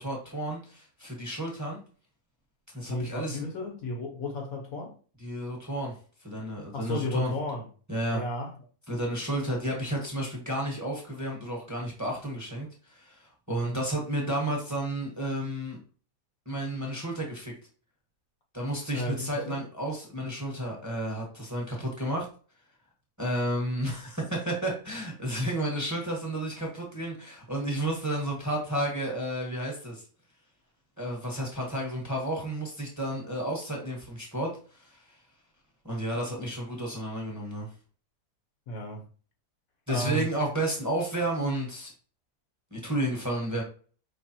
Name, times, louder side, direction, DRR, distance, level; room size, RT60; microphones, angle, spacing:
voice 1, 0.0-1.8 2.7-3.4 5.2-7.3 7.9-8.2 8.9-15.8 16.4-17.5 18.5-22.3 23.2-30.0 31.0-35.2 35.8-37.7 39.9-41.9 42.7-43.6, right 1 dB, 10° right, 1.1 m, -32 dB
voice 2, 2.9-5.0 6.7-7.7 8.1-8.5 13.5-13.8 18.9-19.6 38.7-39.0 39.9-40.3, left 1 dB, 65° left, 1.2 m, -33 dB
5.3 x 3.4 x 2.9 m
omnidirectional pair, 1.7 m